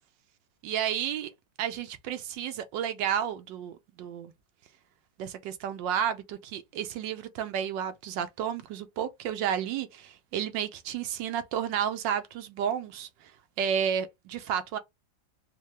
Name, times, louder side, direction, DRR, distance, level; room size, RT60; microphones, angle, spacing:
voice 1, 0.6-1.3 1.6-4.3 5.2-13.3 13.6-14.8, right 9 dB, 80° right, 1.3 m, -31 dB
4.6 x 2.1 x 3.0 m
omnidirectional pair, 2.1 m